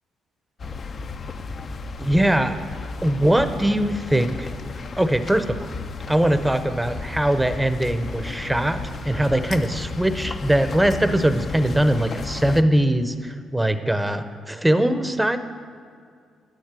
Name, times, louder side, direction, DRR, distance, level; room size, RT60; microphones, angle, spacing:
sound 1, 0.6-12.6, left 4 dB, 45° left, 0.7 m, -34 dB
voice 1, 2.0-2.6 3.0-4.5 5.0-5.6 6.1-15.4, right 1 dB, 10° right, 9 dB, 0.9 m, -21 dB
12.0 x 9.1 x 7.6 m, 2.2 s
cardioid pair, 90°, 0 cm